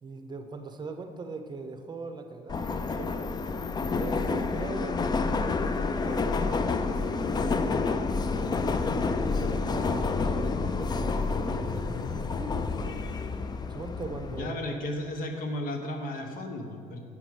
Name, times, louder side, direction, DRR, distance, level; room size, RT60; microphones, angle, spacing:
voice 1, 0.0-3.5 4.0-8.3 9.2-12.8 13.7-14.6, right 3 dB, 30° right, 6 dB, 0.8 m, -41 dB
Subway metro underground, 2.5-14.5, left 4 dB, 30° left, 0.4 m, -29 dB
voice 2, 14.3-17.0, left 1 dB, 70° left, 4 dB, 1.3 m, -34 dB
7.9 x 5.9 x 7.9 m, 2.3 s
cardioid pair, 115°, 15 cm